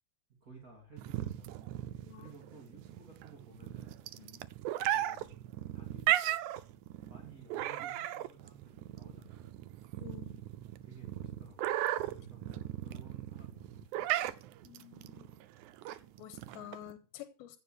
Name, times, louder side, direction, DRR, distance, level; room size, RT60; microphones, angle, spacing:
voice 1, 0.4-4.0 4.9-5.4 5.7-6.1 7.0-9.5 10.8-11.7 12.1-14.3, right 3 dB, 25° right, 2.5 m, -55 dB
sound 1, 1.0-16.9, right 13 dB, 85° right, 1.7 m, -36 dB
voice 2, 2.0-2.4 4.2-4.4 10.0-10.4 14.6-15.3 15.9-17.6, left 13 dB, 85° left, 2.7 m, -50 dB
15.5 x 5.2 x 7.8 m
omnidirectional pair, 4.3 m